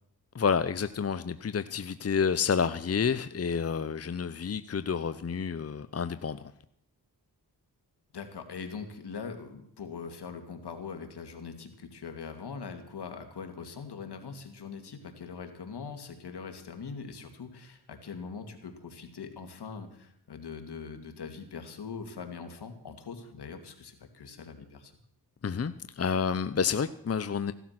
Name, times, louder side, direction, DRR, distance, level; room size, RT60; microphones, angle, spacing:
voice 1, 0.3-6.5 25.4-27.5, left 6 dB, 35° left, 13 dB, 0.8 m, -29 dB
voice 2, 8.1-24.9, left 5 dB, 75° left, 6 dB, 2.6 m, -42 dB
16.5 x 12.0 x 6.0 m, 0.72 s
cardioid pair, 55°, 40 cm